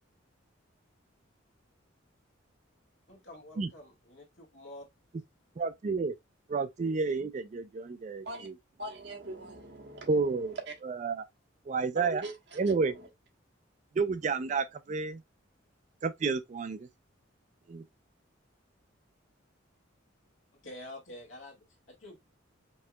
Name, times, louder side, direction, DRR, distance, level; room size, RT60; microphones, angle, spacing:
voice 1, 3.1-4.9 20.6-22.2, left 1 dB, 75° left, 1.6 m, -48 dB
voice 2, 5.6-6.1 6.5-8.3 10.1-10.5 11.0-11.2 11.7-12.2 12.6-12.9 14.0-15.2 16.0-16.8 17.7-17.8, right 4 dB, 35° right, 0.3 m, -30 dB
voice 3, 8.8-10.7 11.9-13.1, right 2 dB, 60° right, 1.2 m, -42 dB
5.3 x 2.8 x 2.2 m
head